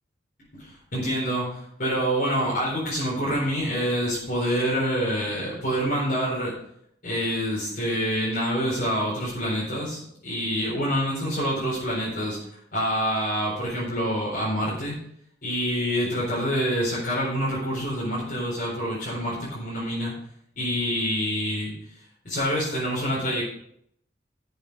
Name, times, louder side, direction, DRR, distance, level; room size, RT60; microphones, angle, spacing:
voice 1, 0.5-6.5 7.0-12.4 12.7-15.0 15.4-20.1 20.6-21.7 22.2-23.4, equal, 55° left, -7 dB, 4.2 m, -26 dB
11.5 x 7.1 x 5.3 m, 0.70 s
head